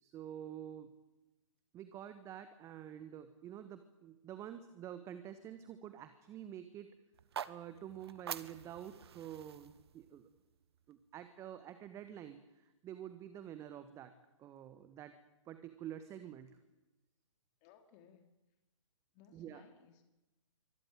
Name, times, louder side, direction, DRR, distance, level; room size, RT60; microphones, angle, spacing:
voice 1, 0.0-0.9 1.7-6.9 7.5-10.3 10.9-14.1 14.4-15.1 15.4-16.6 19.3-19.6, right 10 dB, 20° right, 11 dB, 1.3 m, -48 dB
sound 1, 7.1-11.3, right 8 dB, 55° right, 1.2 m, -48 dB
voice 2, 17.6-18.3 19.1-20.0, left 8 dB, 30° left, 7 dB, 3.2 m, -62 dB
24.0 x 17.5 x 9.0 m, 1.0 s
figure-of-eight pair, 130°, 16 cm